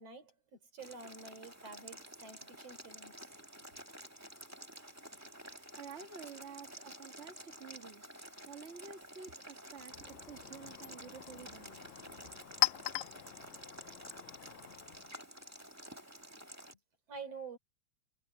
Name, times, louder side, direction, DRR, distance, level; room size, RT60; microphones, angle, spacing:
voice 1, 0.0-3.7 17.1-17.6, right 4 dB, 55° right, 5.2 m, -49 dB
Boiling, 0.8-16.7, equal, 10° right, 1.2 m, -51 dB
voice 2, 5.7-8.0 8.5-11.8 12.2-12.4, right 6 dB, 30° right, 1.5 m, -51 dB
Chink clink, 9.7-15.2, left 22 dB, 80° left, 1.8 m, -40 dB
omnidirectional pair, 3.4 m